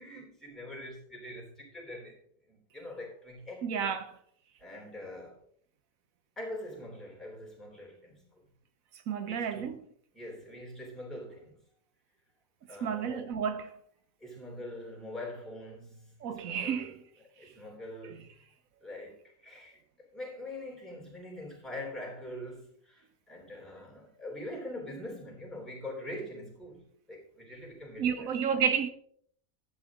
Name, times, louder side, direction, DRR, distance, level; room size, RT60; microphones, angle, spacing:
voice 1, 0.0-2.2 2.5-3.9 4.6-5.4 6.4-8.4 9.2-9.8 10.1-11.6 12.7-13.5 14.2-17.0 17.4-18.4 18.8-19.2 19.4-28.3, left 1 dB, ahead, 3.1 m, -44 dB
voice 2, 3.6-4.2 9.1-9.8 12.8-13.8 16.2-16.9 28.0-28.9, right 7 dB, 80° right, 1.2 m, -31 dB
11.5 x 7.9 x 3.6 m
omnidirectional pair, 1.4 m